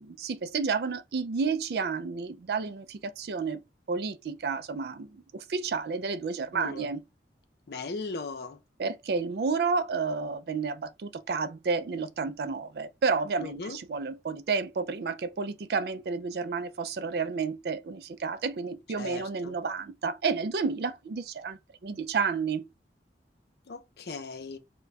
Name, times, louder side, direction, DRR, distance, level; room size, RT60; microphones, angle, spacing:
voice 1, 0.0-3.6 3.9-7.0 8.8-22.6, right 5 dB, 60° right, 0.4 m, -31 dB
voice 2, 6.5-6.9 7.7-8.6 13.4-13.8 19.0-19.5 23.7-24.6, left 3 dB, 60° left, 0.5 m, -38 dB
2.3 x 2.2 x 3.9 m
head